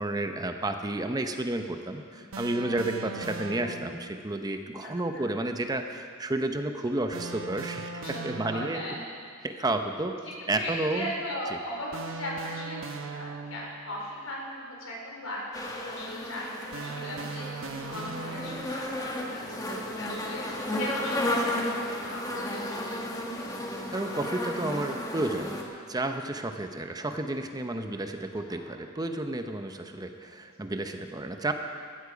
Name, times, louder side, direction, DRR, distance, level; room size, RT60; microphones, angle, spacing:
voice 1, 0.0-8.8 9.4-10.1 10.5-11.1 23.9-31.5, right 2 dB, 20° right, 6 dB, 0.7 m, -31 dB
sound 1, 2.3-4.1 7.1-9.0 11.9-13.9 16.7-18.9, right 3 dB, 75° right, 0.9 m, -39 dB
voice 2, 4.8-5.3 6.8-6.9 8.0-8.2 8.5-9.0 10.6-23.5 28.4-28.8 30.2-30.3, left 1 dB, 80° left, -2 dB, 4.0 m, -39 dB
sound 2, 15.5-25.6, left 1 dB, 20° left, 1.6 m, -33 dB
15.0 x 13.5 x 5.1 m, 2.1 s
head